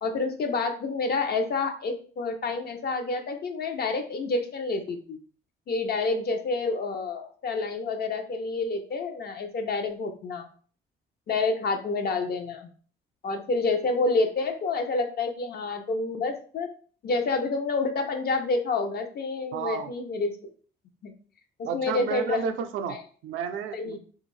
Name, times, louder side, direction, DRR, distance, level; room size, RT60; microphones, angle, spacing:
voice 1, 0.0-5.2 5.7-10.5 11.3-12.7 13.2-16.7 17.0-20.4 21.0-21.1 21.6-22.4 22.9-23.0 23.7-24.0, left 3 dB, 50° left, 5 dB, 0.6 m, -28 dB
voice 2, 19.5-19.9 21.6-24.0, right 7 dB, 85° right, 7 dB, 0.4 m, -32 dB
2.6 x 2.4 x 3.1 m, 0.43 s
cardioid pair, 90°, 20 cm